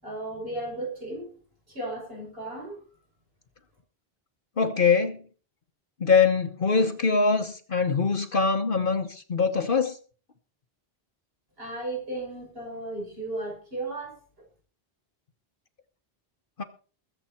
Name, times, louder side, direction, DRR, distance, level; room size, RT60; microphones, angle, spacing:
voice 1, 0.0-1.3 1.7-2.8 11.6-14.2, right 2 dB, 65° right, 6.7 m, -35 dB
voice 2, 4.6-5.2 6.0-10.0 16.6-16.7, left 5 dB, 55° left, 1.2 m, -23 dB
21.5 x 7.9 x 4.4 m
omnidirectional pair, 1.1 m